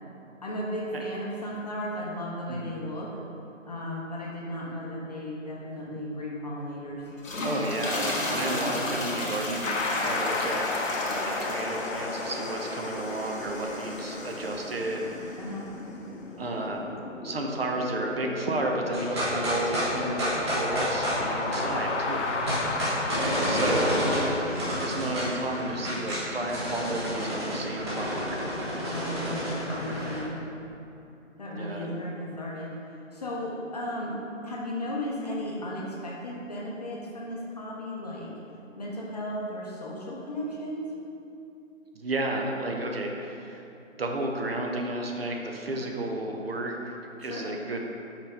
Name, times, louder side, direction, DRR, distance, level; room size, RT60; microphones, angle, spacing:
voice 1, 0.4-3.2 3.6-7.0 15.4-15.7 23.3-23.9 28.9-30.3 31.4-38.3 38.8-40.9 47.2-47.5, left 1 dB, 30° left, -4 dB, 0.7 m, -35 dB
sound 1, 7.1-15.4, left 1 dB, 90° left, 1.4 m, -34 dB
voice 2, 7.4-10.7 11.0-15.4 16.4-16.9 17.2-22.3 23.4-24.0 24.8-28.4 31.6-32.0 41.9-43.6 44.0-47.8, right 1 dB, 50° right, 1 dB, 0.7 m, -32 dB
sound 2, 9.6-23.2, left 3 dB, 65° left, 0.8 m, -33 dB
sound 3, 18.9-30.2, equal, 20° right, 0.9 m, -30 dB
5.6 x 4.9 x 3.5 m, 2.8 s
figure-of-eight pair, 160°, 39 cm